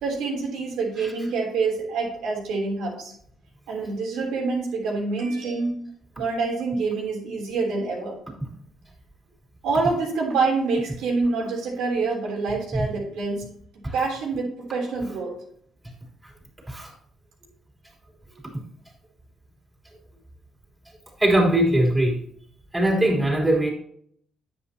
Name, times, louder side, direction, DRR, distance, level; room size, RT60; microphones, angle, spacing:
voice 1, 0.0-3.1 3.7-5.8 6.2-8.2 9.6-13.5 13.9-15.3, right 4 dB, 85° right, -1 dB, 3.4 m, -26 dB
voice 2, 21.2-22.2 22.7-23.7, right 1 dB, 15° right, -2 dB, 3.5 m, -21 dB
9.4 x 8.0 x 2.9 m, 0.64 s
cardioid pair, 90°, 0 cm